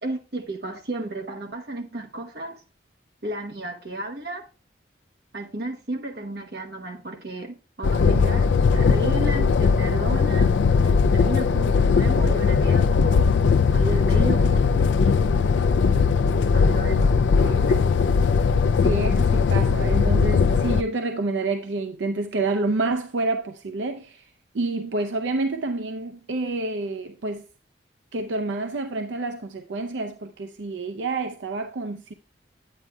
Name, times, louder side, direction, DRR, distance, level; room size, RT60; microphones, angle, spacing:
voice 1, 0.0-2.6 3.2-4.5 5.3-13.3 13.7-15.3 16.5-17.9, right 2 dB, 60° right, 1.1 m, -33 dB
sound 1, 7.8-20.8, left 5 dB, 80° left, 0.4 m, -19 dB
voice 2, 18.8-24.3 24.5-27.5 28.1-32.1, right 3 dB, 80° right, 0.5 m, -28 dB
9.2 x 8.9 x 2.3 m
head